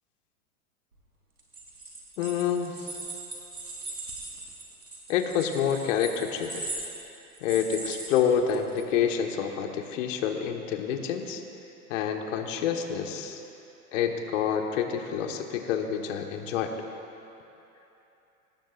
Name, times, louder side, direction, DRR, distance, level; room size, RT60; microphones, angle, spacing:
sound 1, 1.4-8.8, right 2 dB, 85° right, 3.8 m, -40 dB
voice 1, 2.2-2.9 5.1-6.7 7.4-11.4 11.9-13.4 13.9-16.7, left 8 dB, 55° left, 4 dB, 1.7 m, -28 dB
24.5 x 19.0 x 2.6 m, 2.9 s
figure-of-eight pair, 95°, 44 cm